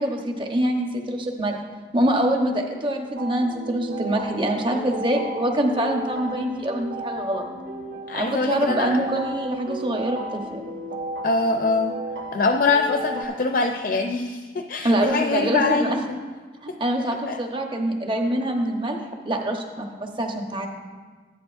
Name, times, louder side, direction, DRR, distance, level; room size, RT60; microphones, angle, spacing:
voice 1, 0.0-1.6 1.9-7.4 8.2-10.6 14.8-16.0 16.6-19.0 19.2-20.7, right 1 dB, 25° right, 2 dB, 1.0 m, -25 dB
sound 1, 3.2-13.2, right 1 dB, 85° right, 2.0 m, -34 dB
voice 2, 8.1-9.0 11.2-12.0 12.3-16.2 17.3-17.4, left 3 dB, 50° left, 5 dB, 0.5 m, -23 dB
14.5 x 10.5 x 2.6 m, 1.5 s
head